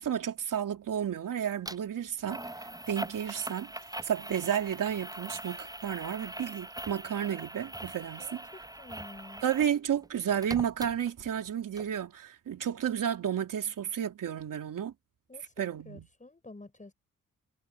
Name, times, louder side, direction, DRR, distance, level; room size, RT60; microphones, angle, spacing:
voice 1, 0.0-2.4 2.9-3.7 4.0-8.4 9.4-14.9 15.6-16.1, right 9 dB, 80° right, 3.4 m, -32 dB
sound 1, 1.6-1.8 2.3-9.7 10.0-11.5 11.8-11.9, right 1 dB, 10° right, 7.8 m, -42 dB
voice 2, 8.2-9.4 15.3-16.9, left 2 dB, 25° left, 6.7 m, -50 dB
cardioid pair, 70°, 32 cm